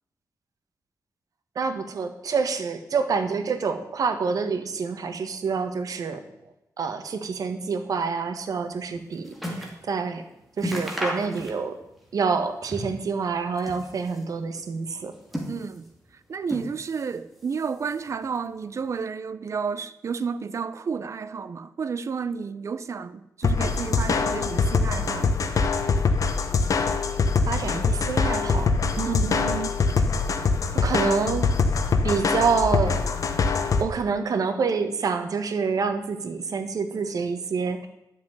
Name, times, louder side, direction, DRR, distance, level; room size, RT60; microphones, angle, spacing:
voice 1, 1.5-6.2 6.8-10.2 10.6-11.8 12.1-15.1 27.5-28.7 28.9-29.7 30.7-31.5 32.0-33.0 33.8-37.9, right 5 dB, 70° right, 1.5 m, -27 dB
sound 1, 8.7-9.8 10.2-10.3 10.6-11.9 12.2-13.1 13.5-14.3 15.0-16.0 16.4-17.2 17.4-18.2 18.9-19.0, equal, ahead, 2.5 m, -34 dB
voice 2, 15.5-15.9 16.3-25.4 29.0-29.3, right 5 dB, 50° right, 0.7 m, -31 dB
sound 2, 23.4-33.8, left 4 dB, 60° left, 1.2 m, -23 dB
11.5 x 7.0 x 9.5 m
wide cardioid pair, 160°, 6 cm